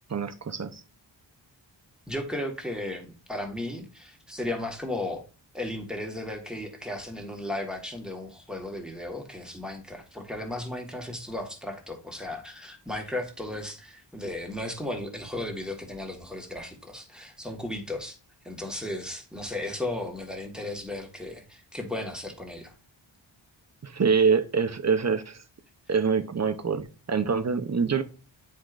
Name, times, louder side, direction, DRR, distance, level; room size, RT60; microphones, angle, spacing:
voice 1, 0.1-0.8 23.8-25.4 25.9-28.0, right 5 dB, 35° right, 0.7 m, -25 dB
voice 2, 2.1-5.2 5.5-18.2 18.4-22.7, left 1 dB, ahead, 1.5 m, -35 dB
9.4 x 4.5 x 2.5 m
wide cardioid pair, 95°, 45 cm